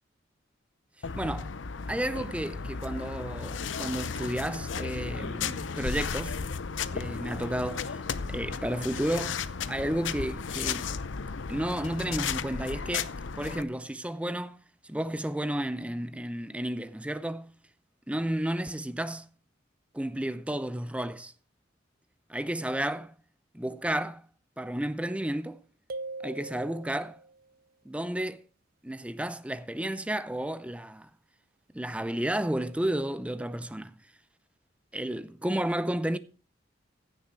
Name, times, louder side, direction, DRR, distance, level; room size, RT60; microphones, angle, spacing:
sound 1, 1.0-13.6, left 5 dB, 80° left, 0.7 m, -34 dB
voice 1, 1.0-1.5 1.9-6.4 6.9-8.0 8.3-9.4 9.7-10.9 11.5-14.6 14.8-17.5 18.1-19.3 19.9-21.3 22.3-23.1 23.5-24.3 24.6-25.6 26.2-27.2 27.8-28.4 28.8-31.1 31.7-33.9 34.9-36.2, right 1 dB, 5° right, 0.6 m, -32 dB
sound 2, 25.9-27.4, right 3 dB, 50° right, 0.7 m, -40 dB
15.5 x 6.9 x 4.6 m
head